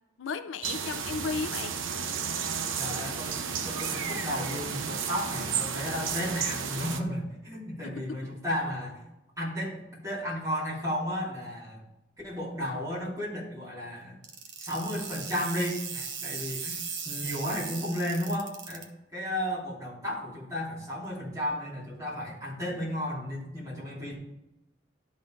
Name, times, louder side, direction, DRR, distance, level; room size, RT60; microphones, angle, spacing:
voice 1, 0.2-1.8 7.8-8.2, left 4 dB, 80° left, 0.4 m, -35 dB
sound 1, 0.6-7.0, right 6 dB, 85° right, 0.7 m, -32 dB
voice 2, 2.8-9.0 9.4-11.8 12.2-14.2 14.6-24.2, equal, 15° right, 2.9 m, -34 dB
sound 2, 14.2-18.8, right 6 dB, 65° right, 1.0 m, -38 dB
11.5 x 4.1 x 3.7 m
head